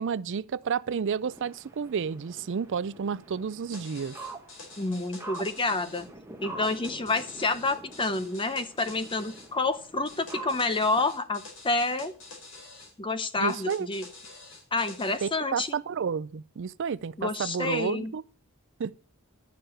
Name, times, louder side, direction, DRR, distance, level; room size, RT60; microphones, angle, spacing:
voice 1, 0.0-4.1 13.4-13.9 15.2-18.2 18.8-18.9, right 6 dB, 60° right, 0.4 m, -31 dB
sound 1, 1.2-11.0, right 3 dB, 10° right, 1.4 m, -46 dB
sound 2, 3.7-6.1 6.6-9.5 10.1-12.9 13.5-15.3, left 3 dB, 60° left, 4.3 m, -47 dB
voice 2, 4.8-6.1 6.4-12.1 13.0-14.0 14.7-15.7 17.2-18.1, left 3 dB, 25° left, 0.8 m, -28 dB
11.5 x 6.8 x 6.4 m
head